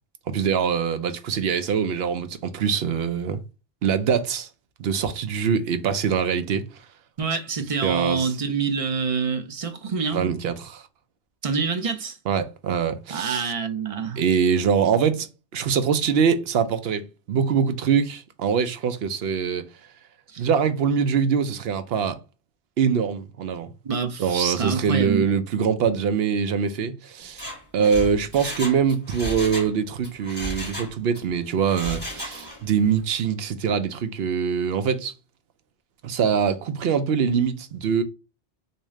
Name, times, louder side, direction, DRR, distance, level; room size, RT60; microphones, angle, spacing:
voice 1, 0.3-3.4 3.8-4.5 4.8-6.6 7.8-8.3 10.1-10.8 12.3-13.5 14.2-15.3 15.5-19.6 20.4-22.2 22.8-23.7 24.2-35.1 36.0-38.0, right 7 dB, 70° right, 0.8 m, -23 dB
voice 2, 7.2-10.3 11.4-12.2 13.1-14.2 20.3-20.4 23.8-25.3, right 5 dB, 40° right, 0.5 m, -26 dB
Mechanisms, 27.2-29.7 30.0-31.2 31.6-32.7 33.0-33.1, equal, 10° left, 2.1 m, -34 dB
3.6 x 2.8 x 3.1 m
omnidirectional pair, 1.1 m